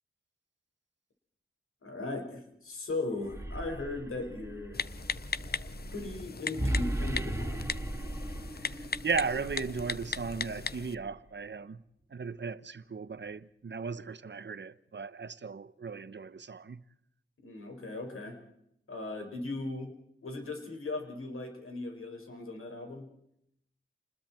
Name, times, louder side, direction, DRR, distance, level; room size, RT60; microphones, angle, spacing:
voice 1, 1.8-4.8 5.9-7.7 17.4-18.4 18.9-19.9 20.2-23.1, left 2 dB, 90° left, 5.8 m, -38 dB
sound 1, 3.1-11.3, right 1 dB, 15° right, 2.1 m, -37 dB
Typing, 4.7-10.9, left 5 dB, 50° left, 0.7 m, -38 dB
voice 2, 8.6-11.8 12.1-16.8, right 5 dB, 55° right, 1.1 m, -36 dB
28.5 x 21.0 x 4.5 m
wide cardioid pair, 70°, 21 cm